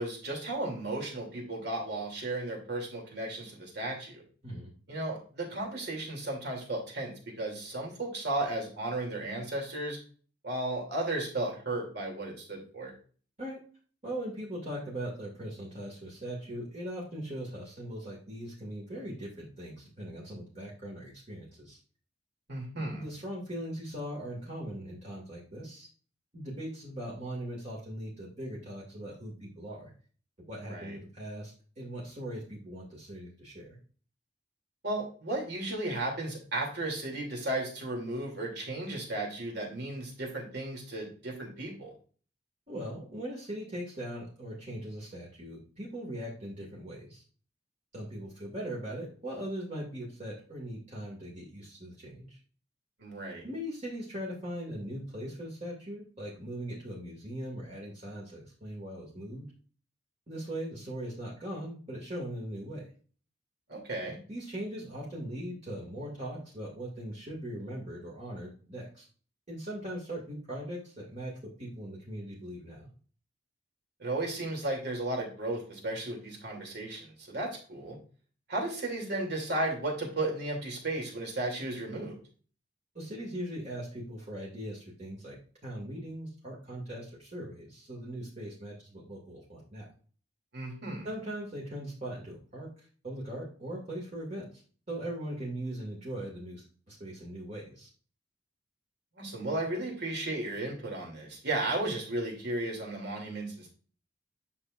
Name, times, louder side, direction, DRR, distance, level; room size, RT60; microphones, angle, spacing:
voice 1, 0.0-4.2 4.9-10.0 10.4-12.9 22.5-23.0 30.6-31.0 34.8-41.9 53.0-53.4 63.7-64.2 74.0-78.0 78.5-82.2 90.5-91.1 99.2-103.7, right 2 dB, 60° right, 0 dB, 2.8 m, -34 dB
voice 2, 14.0-21.8 22.9-25.9 26.3-29.9 30.5-33.7 42.7-47.2 47.9-52.4 53.4-59.5 60.3-62.8 64.3-69.1 69.5-72.9 82.9-85.4 85.6-89.9 91.0-92.7 93.0-94.5 94.9-97.9, right 1 dB, 40° right, -4 dB, 2.2 m, -40 dB
9.8 x 5.9 x 2.5 m, 0.41 s
head